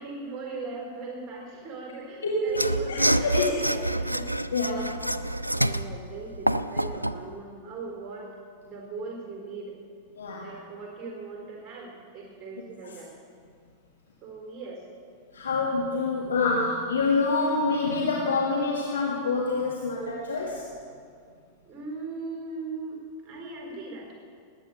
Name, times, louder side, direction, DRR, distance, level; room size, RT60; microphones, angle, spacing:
voice 1, 0.0-4.3 5.5-8.3 8.6-9.7 10.4-13.1 14.2-14.8 21.6-24.1, right 3 dB, 25° right, -1 dB, 4.4 m, -39 dB
voice 2, 2.2-3.6 4.5-4.9 10.2-10.5 15.3-20.6, left 3 dB, 70° left, -2 dB, 1.8 m, -26 dB
Mechanisms / Sawing, 2.5-7.2, right 1 dB, 90° right, 0.4 m, -27 dB
19.5 x 9.0 x 7.0 m, 2.3 s
figure-of-eight pair, 90°, 0 cm